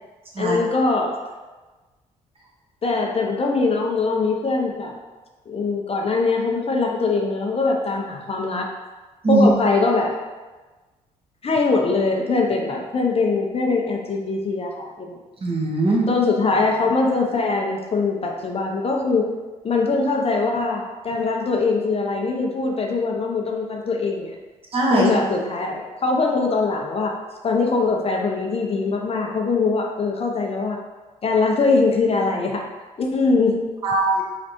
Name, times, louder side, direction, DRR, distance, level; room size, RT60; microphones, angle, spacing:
voice 1, 0.4-1.2 2.8-5.0 5.5-8.7 9.3-10.1 11.4-15.2 16.1-19.3 19.6-24.4 24.9-27.2 27.4-30.8 31.2-32.6 33.0-33.7, left 3 dB, 40° left, 0 dB, 0.6 m, -22 dB
voice 2, 15.4-16.1 24.7-25.1 33.8-34.2, right 2 dB, 40° right, -3 dB, 1.2 m, -19 dB
4.0 x 3.2 x 2.9 m, 1.3 s
supercardioid pair, 60°, 15 cm